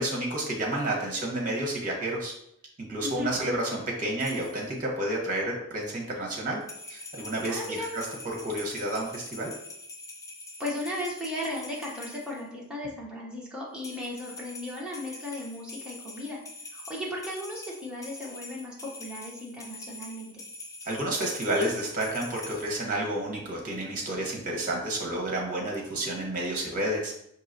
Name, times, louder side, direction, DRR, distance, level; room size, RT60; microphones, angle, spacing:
voice 1, 0.0-2.3 2.8-6.6 6.9-8.1 8.4-9.5 20.8-27.1, right 1 dB, 40° right, -1 dB, 1.0 m, -30 dB
sound 1, 4.2-4.7 6.6-12.4 13.8-22.8, left 2 dB, 15° left, 0.4 m, -44 dB
voice 2, 7.4-7.9 10.6-16.4 16.7-20.3, left 1 dB, 5° right, -5 dB, 0.9 m, -36 dB
4.6 x 2.9 x 2.6 m, 0.74 s
head